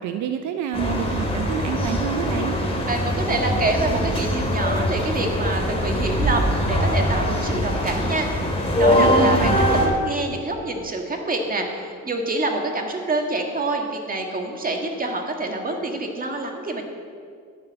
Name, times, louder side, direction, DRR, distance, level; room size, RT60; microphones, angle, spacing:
voice 1, 0.0-2.5 8.9-9.6, right 7 dB, 75° right, 7 dB, 0.7 m, -28 dB
sound 1, 0.7-9.9, equal, 20° left, 2.3 m, -22 dB
voice 2, 2.9-8.3 8.5-16.8, right 2 dB, 30° right, 2 dB, 1.9 m, -26 dB
11.5 x 5.9 x 8.7 m, 2.2 s
cardioid pair, 90°, 30 cm